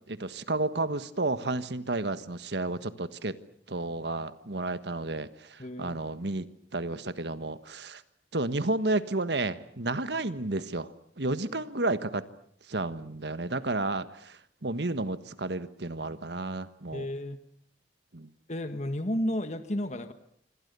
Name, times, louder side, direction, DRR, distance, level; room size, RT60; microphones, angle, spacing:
voice 1, 0.1-3.4 3.7-6.5 6.7-8.0 8.3-10.9 11.2-12.2 12.7-17.1 18.1-18.3, right 2 dB, 70° right, 12 dB, 1.5 m, -31 dB
voice 2, 5.6-6.0 16.9-17.4 18.5-20.1, left 1 dB, 40° left, 9 dB, 1.6 m, -32 dB
27.0 x 26.0 x 6.9 m, 0.63 s
head